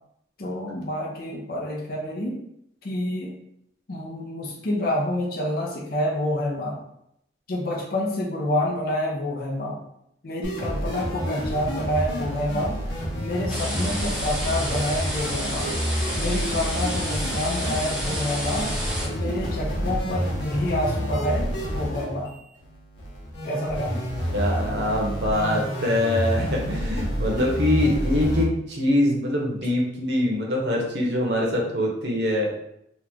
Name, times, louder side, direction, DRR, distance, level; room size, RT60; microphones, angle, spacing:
voice 1, 0.4-2.4 2.8-3.3 3.9-6.8 7.5-9.8 10.2-12.8 13.2-15.7 16.2-18.7 19.1-22.3 23.4-23.9 26.4-26.7, left 1 dB, 50° left, -3 dB, 0.6 m, -28 dB
sound 1, 10.4-28.4, equal, 85° left, 0.9 m, -29 dB
sound 2, 13.5-19.1, equal, 5° right, 0.6 m, -31 dB
voice 2, 24.3-32.5, left 1 dB, 65° right, -1 dB, 0.9 m, -24 dB
3.0 x 2.3 x 3.5 m, 0.76 s
head